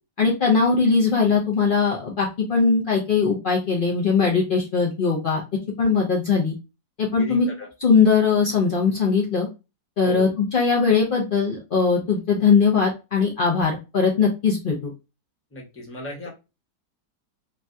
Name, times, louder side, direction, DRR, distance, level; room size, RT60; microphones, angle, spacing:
voice 1, 0.2-5.4 5.8-6.5 7.0-7.5 7.8-9.5 10.0-14.9, left 5 dB, 80° left, -2 dB, 0.4 m, -20 dB
voice 2, 7.1-7.7 10.0-10.3 15.5-16.3, left 1 dB, 10° left, -2 dB, 0.7 m, -35 dB
3.2 x 2.3 x 2.5 m, 0.27 s
omnidirectional pair, 1.8 m